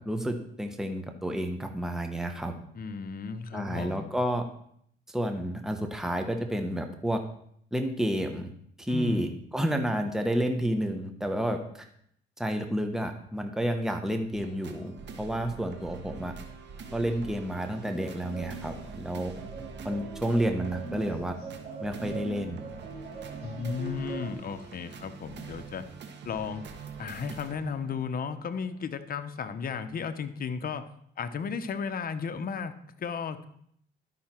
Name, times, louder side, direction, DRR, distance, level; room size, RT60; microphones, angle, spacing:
voice 1, 0.0-2.5 3.5-4.4 5.1-7.2 7.7-8.5 8.8-9.3 9.5-11.9 12.4-16.3 16.9-19.3 19.8-21.3 21.8-22.7, equal, ahead, 5 dB, 1.1 m, -30 dB
voice 2, 2.7-4.1 8.9-9.3 23.4-25.8 26.2-26.7 27.0-30.9 31.2-33.5, left 6 dB, 50° left, 10 dB, 0.9 m, -34 dB
sound 1, 14.3-28.9 29.4-29.5, right 5 dB, 60° right, 1.3 m, -45 dB
sound 2, 18.0-24.3, right 5 dB, 30° right, 3.3 m, -42 dB
11.5 x 5.7 x 4.4 m, 0.67 s
cardioid pair, 90°, 20 cm